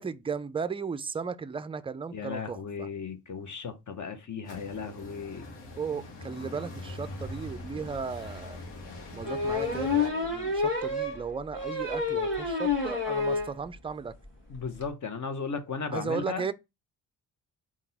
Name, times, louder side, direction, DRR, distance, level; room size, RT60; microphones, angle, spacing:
voice 1, 0.0-2.9 5.8-8.6 9.1-14.1 15.9-16.5, right 5 dB, 15° right, 0.3 m, -35 dB
voice 2, 2.1-5.5 14.5-16.4, left 5 dB, 45° left, 1.0 m, -36 dB
sound 1, 4.4-10.1, left 2 dB, 85° left, 1.2 m, -42 dB
sound 2, 7.9-8.0 9.2-13.5 13.9-14.0 14.3-14.4 14.6-14.8, left 4 dB, 30° left, 1.6 m, -29 dB
3.8 x 2.5 x 4.1 m
supercardioid pair, 55°, 42 cm